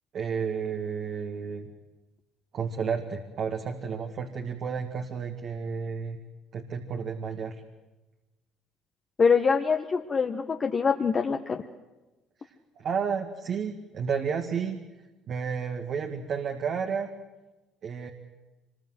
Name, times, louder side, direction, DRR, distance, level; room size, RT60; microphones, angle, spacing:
voice 1, 0.1-1.7 2.5-6.2 6.5-7.5 12.8-14.8 15.3-17.1 17.8-18.1, right 6 dB, 55° right, 3 dB, 2.1 m, -31 dB
voice 2, 9.2-11.6, left 5 dB, 40° left, 3 dB, 1.4 m, -24 dB
25.0 x 21.5 x 8.0 m, 1.1 s
supercardioid pair, 70°, 0 cm